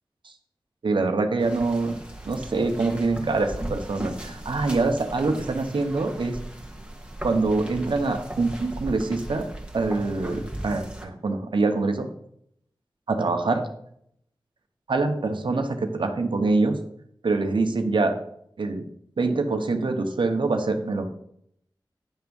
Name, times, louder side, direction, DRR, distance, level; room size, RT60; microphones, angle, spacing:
voice 1, 0.8-2.0 2.2-6.4 7.2-9.5 9.7-12.1 13.1-13.6 14.9-16.8 17.2-18.2 18.6-18.8 19.2-21.1, right 3 dB, 85° right, 6 dB, 1.0 m, -24 dB
sound 1, 1.4-11.1, right 1 dB, 15° right, 1.7 m, -37 dB
10.0 x 3.5 x 7.0 m, 0.72 s
wide cardioid pair, 50°, 8 cm